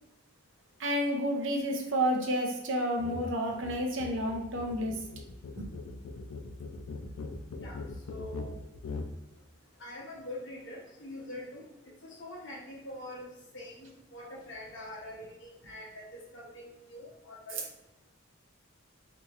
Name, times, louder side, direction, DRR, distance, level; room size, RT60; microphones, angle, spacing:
voice 1, 0.8-5.0 5.6-5.7, equal, 60° right, 1 dB, 0.6 m, -30 dB
sound 1, 3.0-3.2 3.5-9.1, left 3 dB, 75° left, 0.4 m, -41 dB
voice 2, 8.1-8.6 9.8-11.6 12.0-13.3 13.5-17.6, left 1 dB, 55° left, -4 dB, 1.0 m, -44 dB
3.5 x 2.8 x 2.9 m, 0.93 s
head